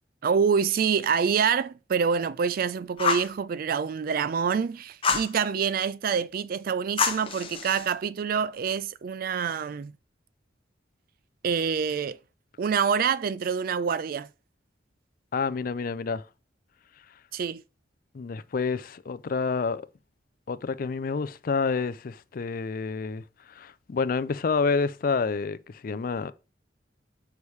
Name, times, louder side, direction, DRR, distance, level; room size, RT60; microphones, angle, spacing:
voice 1, 0.2-9.9 11.4-12.2 12.6-14.3 17.3-17.6, right 6 dB, 50° right, 0.3 m, -26 dB
Fire, 3.0-3.3 5.0-5.3 7.0-7.9, left 5 dB, 30° left, 0.8 m, -27 dB
voice 2, 15.3-16.2 18.1-19.8 20.5-26.3, left 4 dB, 50° left, 0.4 m, -28 dB
6.9 x 4.8 x 3.2 m
head